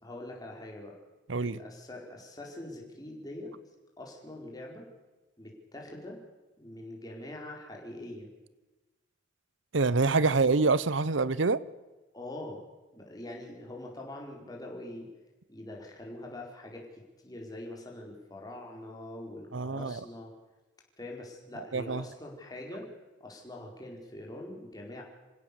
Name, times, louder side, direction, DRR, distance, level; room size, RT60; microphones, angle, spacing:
voice 1, 0.0-1.0 1.4-3.5 4.0-4.9 5.4-6.2 6.6-8.3 10.3-10.5 12.1-12.6 12.9-15.1 15.5-20.3 21.0-22.9 23.2-25.0, left 1 dB, 20° left, 4.7 m, -43 dB
voice 2, 9.7-11.6 19.5-19.9 21.7-22.0, right 4 dB, 80° right, 0.8 m, -26 dB
27.5 x 16.5 x 7.0 m
head